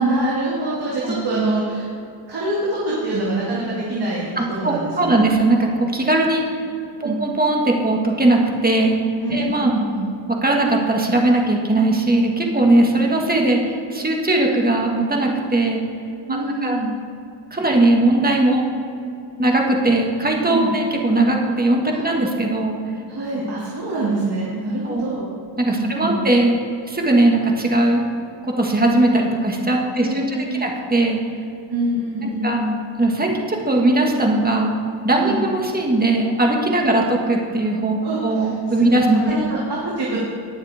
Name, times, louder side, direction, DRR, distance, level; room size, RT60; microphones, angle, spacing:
voice 1, 0.0-1.9 2.3-5.2 7.0-7.2 9.2-10.1 16.3-16.9 20.5-20.7 21.9-22.0 23.1-25.3 25.7-26.1 30.0-30.7 31.7-32.7 35.2-35.4 36.9-37.1 38.0-40.2, right 2 dB, 55° right, -6 dB, 2.5 m, -25 dB
voice 2, 4.4-6.4 7.0-9.0 9.3-9.7 10.4-15.8 16.6-16.8 17.5-18.6 19.4-22.8 24.8-25.0 25.6-26.6 26.8-28.0 28.6-31.2 32.2-32.6 33.0-34.8 35.0-39.3, right 2 dB, 20° right, 0 dB, 1.8 m, -19 dB
19.5 x 7.3 x 3.6 m, 2.6 s
cardioid pair, 100°, 46 cm